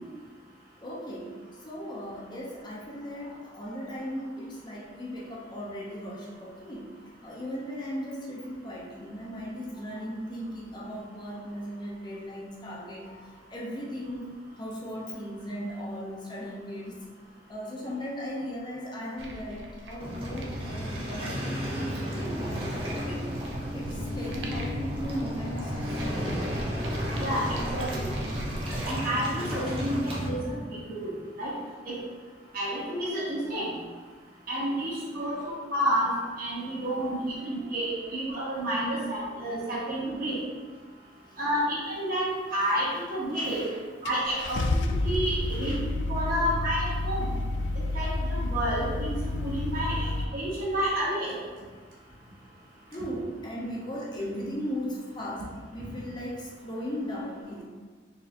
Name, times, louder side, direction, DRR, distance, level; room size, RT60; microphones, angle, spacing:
voice 1, 0.8-6.9 7.2-14.3 14.6-17.0 17.5-22.5 22.8-23.3 23.7-26.4 32.5-33.1 33.4-33.7 35.2-35.6 37.0-38.1 41.4-41.5 42.5-42.6 43.3-43.8 44.3-44.6 45.5-45.8 49.9-50.1 52.9-57.6, equal, 25° left, -4 dB, 0.6 m, -38 dB
sound 1, 19.2-28.8, right 1 dB, 75° right, 0.6 m, -42 dB
Waves surf, 20.0-30.3, equal, 30° right, 0.7 m, -32 dB
voice 2, 27.1-28.1 28.9-31.1 31.4-31.5 31.9-32.0 32.5-33.7 34.5-36.1 36.4-40.4 41.4-43.6 44.0-45.8 46.1-47.3 47.9-49.1 49.4-51.3, right 1 dB, 50° right, -7 dB, 1.2 m, -30 dB
Car / Engine starting, 43.3-43.4 44.1-50.2, left 2 dB, 80° left, 0.3 m, -30 dB
4.0 x 3.5 x 2.7 m, 1.4 s
head